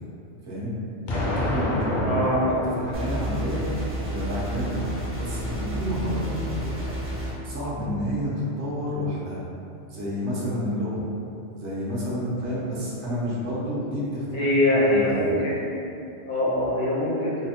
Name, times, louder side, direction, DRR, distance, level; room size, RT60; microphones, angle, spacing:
voice 1, 0.5-0.8 1.2-2.1 2.5-3.7 4.1-6.9 7.4-9.4 9.9-11.0 11.5-15.3, equal, 80° right, -7 dB, 1.1 m, -29 dB
Explosion, 1.1-4.0, left 1 dB, 55° left, 0.6 m, -29 dB
voice 2, 2.0-2.4 14.3-15.6 16.3-17.4, left 1 dB, 75° left, -7 dB, 1.1 m, -23 dB
sound 1, 2.9-7.3, right 1 dB, 20° right, 0.4 m, -31 dB
3.9 x 2.0 x 2.8 m, 2.7 s
omnidirectional pair, 1.1 m